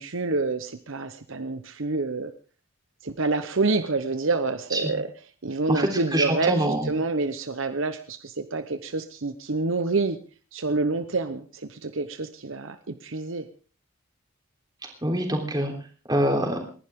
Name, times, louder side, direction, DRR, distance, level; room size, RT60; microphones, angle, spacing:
voice 1, 0.0-2.3 3.0-5.1 5.4-10.2 10.5-13.4, right 3 dB, 65° right, 9 dB, 0.9 m, -27 dB
voice 2, 5.7-6.9 15.0-15.7 16.1-16.6, right 1 dB, 20° right, 2 dB, 3.5 m, -25 dB
29.0 x 11.5 x 3.7 m, 0.39 s
head